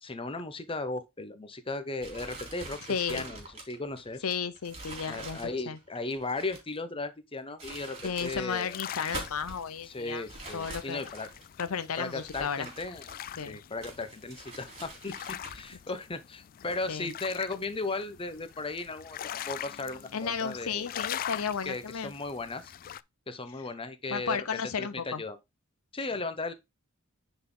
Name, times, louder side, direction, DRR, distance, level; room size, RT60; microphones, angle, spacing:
voice 1, 0.0-2.8 3.1-4.2 5.1-8.8 9.9-11.3 12.0-13.1 13.5-19.2 19.5-20.9 21.6-22.7 23.3-25.4 25.9-26.5, left 3 dB, 25° left, 0.9 m, -36 dB
sound 1, 2.0-6.8 7.4-8.5 8.9-9.6 10.3-11.5 12.1-13.4 13.8-15.8, right 2 dB, 30° right, 3.4 m, -45 dB
voice 2, 2.9-3.2 4.2-5.4 5.7-5.8 8.0-10.2 10.5-11.1 11.6-12.7 13.4-13.6 16.9-17.1 20.1-22.1 24.1-25.2, left 6 dB, 75° left, 0.7 m, -33 dB
sound 2, 8.5-23.0, left 10 dB, 40° left, 0.3 m, -43 dB
9.4 x 4.1 x 3.8 m
head